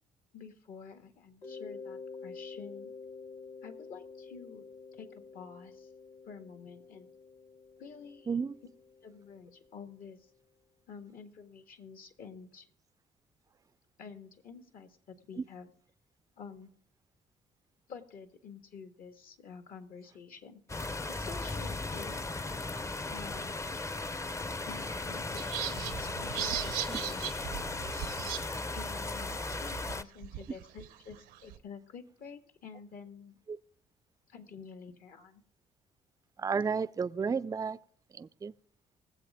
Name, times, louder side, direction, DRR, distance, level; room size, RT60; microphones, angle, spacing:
voice 1, 0.3-2.9 3.6-4.6 4.9-5.9 6.3-7.1 7.8-8.4 9.0-10.3 10.9-12.7 14.0-15.7 16.4-16.7 17.9-20.6 21.1-22.2 23.1-23.8 24.6-28.1 28.7-33.4 34.3-35.4, left 6 dB, 65° left, 1.7 m, -49 dB
Mallet percussion, 1.4-10.0, left 4 dB, 85° left, 3.3 m, -49 dB
voice 2, 8.3-8.6 15.4-15.5 26.9-27.0 36.4-37.8 38.1-38.5, right 5 dB, 20° right, 0.4 m, -32 dB
sound 1, 20.7-30.0, left 2 dB, 20° left, 0.6 m, -37 dB
sound 2, 25.4-28.4 28.8-28.9 29.2-31.6, right 13 dB, 90° right, 0.8 m, -38 dB
21.0 x 7.7 x 3.6 m
supercardioid pair, 65°, 16 cm